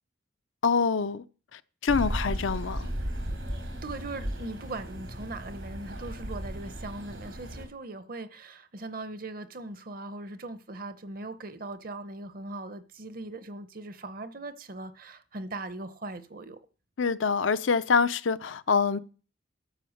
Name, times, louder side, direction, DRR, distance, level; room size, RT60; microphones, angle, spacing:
voice 1, 0.6-1.2 1.5-2.9 17.0-19.0, left 5 dB, 75° left, 0.6 m, -26 dB
sound 1, 1.9-7.7, equal, 85° right, 3.7 m, -35 dB
voice 2, 3.8-16.6, right 2 dB, 45° right, 0.8 m, -40 dB
13.0 x 5.5 x 6.5 m
head